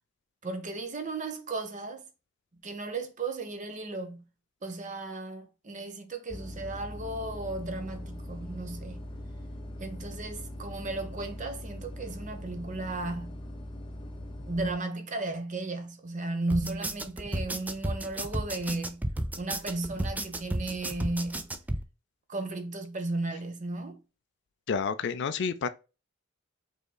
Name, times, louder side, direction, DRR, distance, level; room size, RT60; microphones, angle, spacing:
voice 1, 0.4-2.0 2.6-4.2 4.6-9.0 9.8-13.4 14.5-19.0 19.4-21.5 22.3-24.0, right 2 dB, 40° right, 0.9 m, -35 dB
sound 1, 6.3-14.7, left 1 dB, 25° left, 0.7 m, -41 dB
sound 2, 16.5-21.8, right 1 dB, 10° right, 0.4 m, -32 dB
voice 2, 24.7-25.7, left 5 dB, 60° left, 0.4 m, -29 dB
5.4 x 3.6 x 2.2 m
head